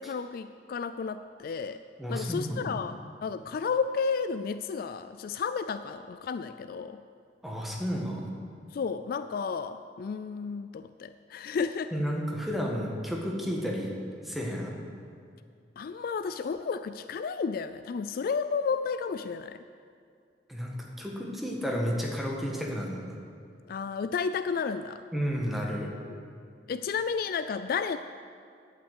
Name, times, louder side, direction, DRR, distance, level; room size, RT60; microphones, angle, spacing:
voice 1, 0.0-1.8 2.1-7.0 8.7-11.9 15.8-19.6 23.7-25.0 26.1-26.2 26.7-28.0, left 5 dB, 55° left, 11 dB, 0.3 m, -32 dB
voice 2, 2.0-2.7 7.4-8.3 11.9-13.9 14.2-14.8 20.5-23.1 25.1-25.9, equal, ahead, -2 dB, 1.6 m, -32 dB
11.5 x 6.0 x 8.1 m, 2.3 s
head